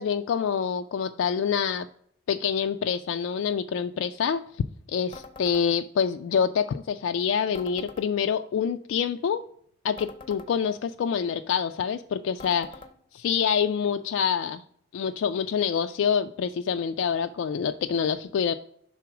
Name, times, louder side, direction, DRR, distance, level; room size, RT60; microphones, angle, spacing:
voice 1, 0.0-1.9 2.3-4.4 4.9-9.4 9.8-12.7 13.1-14.6 14.9-18.5, left 7 dB, 85° left, 8 dB, 0.3 m, -26 dB
sound 1, 5.1-5.7 7.5-8.1 10.0-10.5 12.4-12.9, left 3 dB, 25° left, 0.6 m, -44 dB
5.9 x 3.8 x 5.9 m, 0.65 s
head